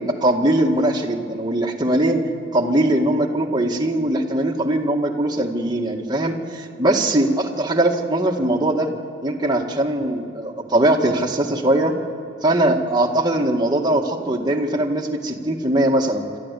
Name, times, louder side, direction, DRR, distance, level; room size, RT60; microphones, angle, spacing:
voice 1, 0.1-2.2 2.5-8.9 9.2-11.9 12.4-16.2, right 1 dB, 25° right, 0 dB, 2.0 m, -20 dB
27.5 x 13.0 x 8.4 m, 2.6 s
head